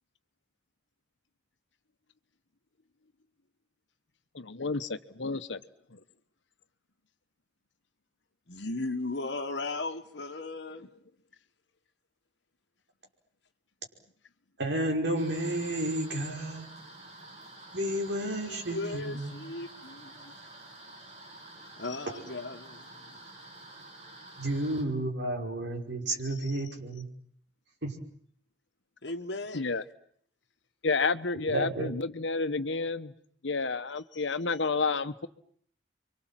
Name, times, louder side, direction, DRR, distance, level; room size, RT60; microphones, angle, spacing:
voice 1, 4.3-5.6 5.9-6.0 29.5-29.8 30.8-33.1 33.4-35.3, left 4 dB, 90° left, 1.2 m, -30 dB
voice 2, 8.5-10.8 18.4-20.3 21.8-22.8 29.0-29.6, left 2 dB, 70° left, 1.5 m, -36 dB
voice 3, 14.6-16.7 17.7-19.4 24.4-27.1 27.8-27.9 31.5-31.9, right 1 dB, 80° right, 5.4 m, -31 dB
sound 1, 15.1-24.8, right 2 dB, 40° right, 6.7 m, -49 dB
29.5 x 24.5 x 7.6 m
head